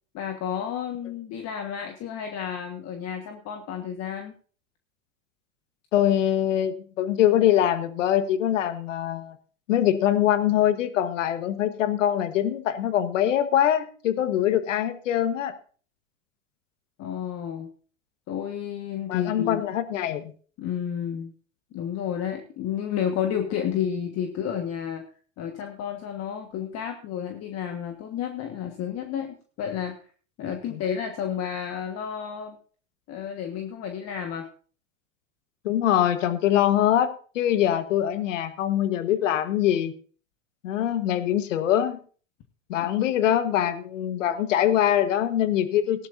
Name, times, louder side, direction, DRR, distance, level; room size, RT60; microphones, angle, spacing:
voice 1, 0.1-4.3 17.0-17.7 18.3-19.6 20.6-21.3 21.7-25.0 25.4-30.0 30.4-32.6 33.1-34.5 42.8-42.9, left 8 dB, 40° left, 5 dB, 1.5 m, -31 dB
voice 2, 5.9-9.4 9.7-15.5 19.1-20.2 30.7-30.8 35.6-39.9 40.6-42.0 42.7-46.1, left 11 dB, 75° left, 11 dB, 1.4 m, -23 dB
17.5 x 11.5 x 2.6 m, 0.41 s
hypercardioid pair, 100°, 38 cm